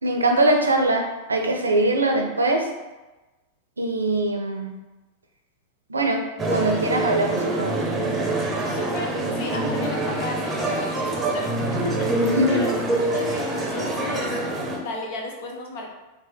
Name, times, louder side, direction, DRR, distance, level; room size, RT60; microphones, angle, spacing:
voice 1, 0.0-2.7 3.8-4.7 5.9-6.2 6.5-7.7 12.2-12.6, right 1 dB, 75° right, 3 dB, 0.6 m, -22 dB
sound 1, 6.4-14.8, right 2 dB, 15° right, 0.9 m, -25 dB
voice 2, 8.7-12.7 13.1-14.3 14.8-15.9, left 2 dB, 50° left, 1 dB, 0.9 m, -34 dB
4.5 x 2.8 x 3.2 m, 1.1 s
figure-of-eight pair, 90°, 0 cm